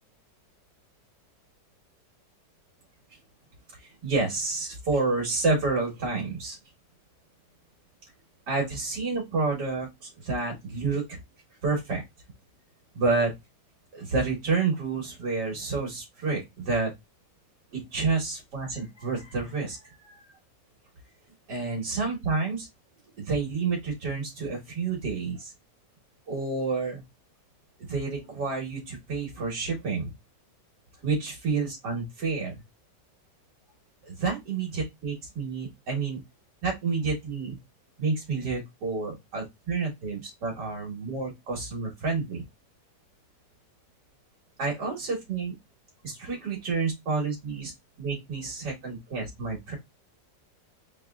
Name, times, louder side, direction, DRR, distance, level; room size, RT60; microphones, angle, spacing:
voice 1, 3.7-6.6 8.5-11.2 11.6-12.0 12.9-13.3 13.9-16.9 17.7-20.2 21.5-22.7 23.2-25.5 26.3-27.0 27.8-30.1 31.0-32.5 34.0-36.2 36.6-37.6 38.0-42.4 44.6-45.5 46.0-47.7 48.0-49.7, right 4 dB, 70° right, -1 dB, 1.9 m, -29 dB
5.2 x 3.1 x 2.2 m, 0.19 s
omnidirectional pair, 1.9 m